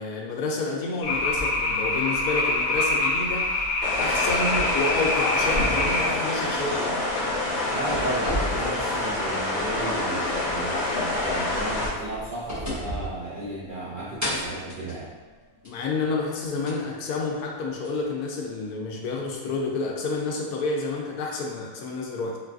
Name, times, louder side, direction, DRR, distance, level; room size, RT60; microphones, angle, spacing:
voice 1, 0.0-3.6 4.0-7.1 15.6-22.4, left 3 dB, 90° left, 0 dB, 1.1 m, -29 dB
sound 1, 1.0-6.1, left 2 dB, 70° left, 0.5 m, -25 dB
sound 2, 3.8-11.9, left 2 dB, 20° left, 0.8 m, -27 dB
sound 3, 5.5-7.3 7.6-9.7 10.0-10.1 11.7-13.8 14.2-15.9 16.7-16.8 17.8-17.9, equal, 15° right, 0.7 m, -34 dB
voice 2, 7.7-15.1, right 2 dB, 70° right, -8 dB, 0.4 m, -34 dB
3.8 x 2.3 x 2.4 m, 1.3 s
omnidirectional pair, 1.6 m